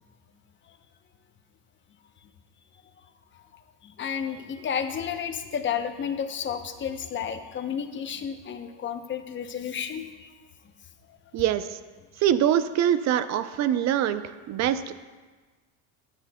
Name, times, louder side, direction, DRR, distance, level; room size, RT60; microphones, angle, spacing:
voice 1, 3.5-10.3 11.1-11.2, left 7 dB, 30° left, 8 dB, 0.7 m, -32 dB
voice 2, 11.3-11.8 12.2-14.2 14.5-15.0, right 10 dB, 45° right, 12 dB, 0.5 m, -24 dB
12.0 x 10.0 x 2.2 m, 1.3 s
supercardioid pair, 110°, 39 cm